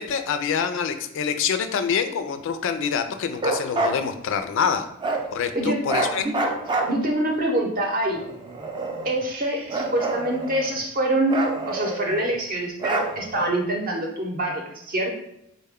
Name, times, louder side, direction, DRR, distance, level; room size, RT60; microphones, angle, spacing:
voice 1, 0.0-4.9 5.3-6.2, left 7 dB, 60° left, 8 dB, 0.3 m, -26 dB
Bark, 3.4-4.0 5.0-5.3 5.9-7.3 8.1-9.2 9.7-10.8 11.3-12.3 12.8-13.5, right 2 dB, 20° right, 0.3 m, -27 dB
voice 2, 6.9-8.2 9.0-15.1, right 1 dB, 40° right, 1 dB, 0.7 m, -25 dB
4.0 x 2.2 x 3.5 m, 0.76 s
head